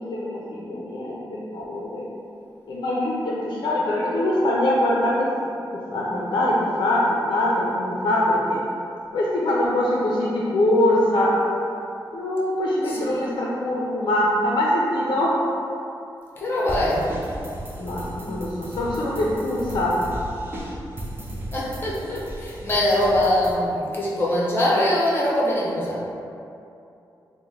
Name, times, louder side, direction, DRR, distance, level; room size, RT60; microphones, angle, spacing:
voice 1, 0.0-2.1 2.7-5.3 5.9-7.0 7.3-8.6 9.1-11.3 12.1-15.3 17.8-19.9, left 1 dB, 60° left, -5 dB, 0.4 m, -23 dB
voice 2, 12.8-13.3 16.4-17.1 21.5-26.0, left 1 dB, 25° left, -6 dB, 0.7 m, -23 dB
sound 1, 16.7-23.5, right 1 dB, 25° right, 0.5 m, -35 dB
3.4 x 2.1 x 3.2 m, 2.7 s
wide cardioid pair, 95°, 8 cm